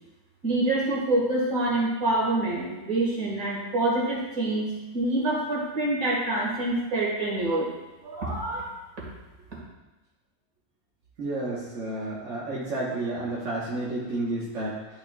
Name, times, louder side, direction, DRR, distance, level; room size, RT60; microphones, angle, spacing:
voice 1, 0.4-4.7 4.9-7.7 8.0-8.7, right 2 dB, 80° right, -5 dB, 2.4 m, -26 dB
voice 2, 11.2-14.8, right 2 dB, 60° right, -6 dB, 1.6 m, -31 dB
11.0 x 5.3 x 2.4 m, 1.1 s
omnidirectional pair, 1.5 m